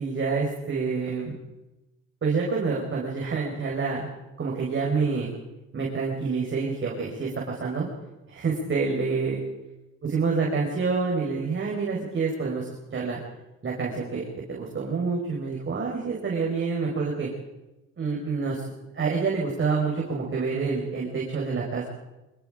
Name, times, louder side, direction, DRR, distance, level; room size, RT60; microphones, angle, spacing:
voice 1, 0.0-1.4 2.2-4.1 4.4-5.3 5.7-7.9 8.3-9.4 10.0-13.2 13.6-14.2 14.5-17.3 18.0-21.8, right 4 dB, 40° right, -3 dB, 5.3 m, -27 dB
24.5 x 21.5 x 5.1 m, 1.0 s
cardioid pair, 90°, 30 cm